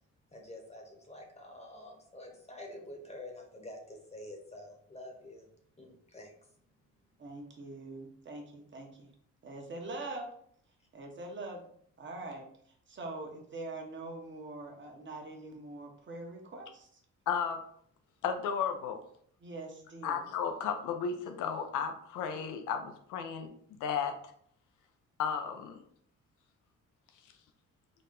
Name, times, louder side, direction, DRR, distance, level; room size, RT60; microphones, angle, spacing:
voice 1, 0.3-5.5 5.8-6.3, left 1 dB, 20° left, 1 dB, 0.9 m, -48 dB
voice 2, 7.2-9.1 9.4-10.3 10.9-11.7 12.0-12.5 12.9-17.0 19.4-20.2, right 2 dB, 40° right, 2 dB, 1.0 m, -43 dB
voice 3, 17.3-17.6 18.2-19.0 20.0-23.5 23.8-24.1 25.2-25.8, left 7 dB, 85° left, 6 dB, 0.6 m, -33 dB
3.9 x 2.1 x 3.8 m, 0.65 s
cardioid pair, 90°, 30 cm